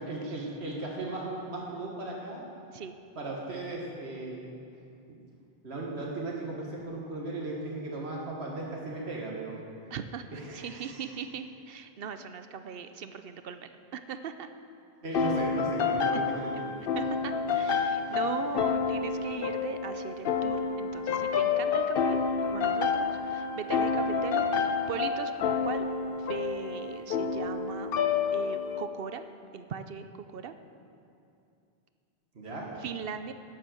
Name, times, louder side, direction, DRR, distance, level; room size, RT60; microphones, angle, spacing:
voice 1, 0.0-2.4 3.1-4.5 5.6-9.6 10.3-11.2 15.0-16.6 17.5-18.3 32.3-32.8, right 2 dB, 90° right, -3 dB, 1.8 m, -37 dB
voice 2, 9.9-14.5 16.1-16.3 16.9-22.2 22.5-25.9 26.3-28.0 28.3-29.2 29.5-30.1 30.3-30.5 32.8-33.3, right 7 dB, 65° right, 10 dB, 0.8 m, -39 dB
sound 1, 15.1-28.8, left 5 dB, 65° left, 0.8 m, -29 dB
11.0 x 7.6 x 7.7 m, 2.5 s
omnidirectional pair, 1.1 m